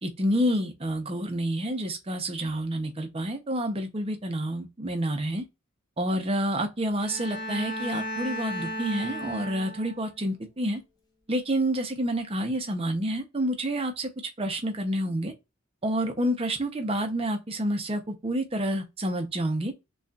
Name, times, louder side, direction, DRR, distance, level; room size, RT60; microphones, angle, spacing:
voice 1, 0.0-5.4 6.0-10.8 11.3-14.1 14.4-15.3 15.8-19.7, right 1 dB, 25° right, 0.6 m, -28 dB
Bowed string instrument, 7.0-10.2, equal, 20° left, 0.9 m, -35 dB
6.4 x 2.4 x 2.3 m
head